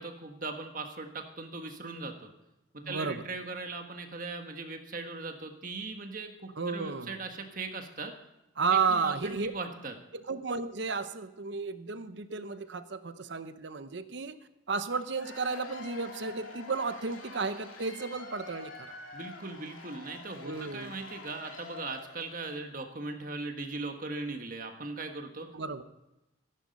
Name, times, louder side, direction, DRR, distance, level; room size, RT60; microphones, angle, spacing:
voice 1, 0.0-2.3 2.7-8.1 8.7-9.9 19.1-25.5, right 3 dB, 40° right, 5 dB, 1.4 m, -39 dB
voice 2, 2.8-3.2 6.6-7.2 8.6-9.5 10.1-14.4 14.7-18.9 20.4-21.0 25.5-25.8, right 4 dB, 60° right, 11 dB, 0.8 m, -33 dB
Cheering / Applause / Crowd, 14.9-22.6, left 3 dB, 90° left, 2.5 m, -47 dB
14.5 x 11.0 x 5.3 m, 0.94 s
head